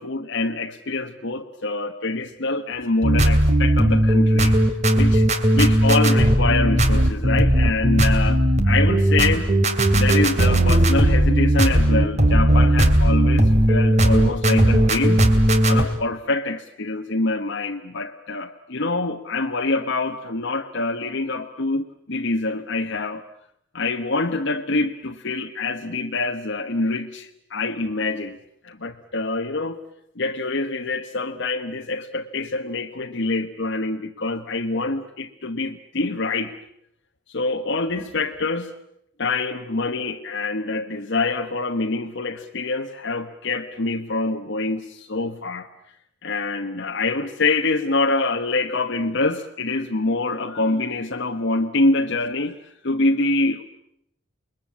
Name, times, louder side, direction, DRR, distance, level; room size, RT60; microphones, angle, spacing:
voice 1, 0.0-4.6 4.9-5.3 5.5-9.5 9.9-15.3 15.6-23.2 23.7-28.4 28.6-29.8 30.2-36.5 37.3-38.7 39.2-45.7 46.2-52.6 52.8-53.6, left 2 dB, 60° left, 3 dB, 1.2 m, -25 dB
sound 1, 3.0-15.8, right 1 dB, 35° right, 2.8 m, -17 dB
28.5 x 22.0 x 8.7 m, 0.77 s
head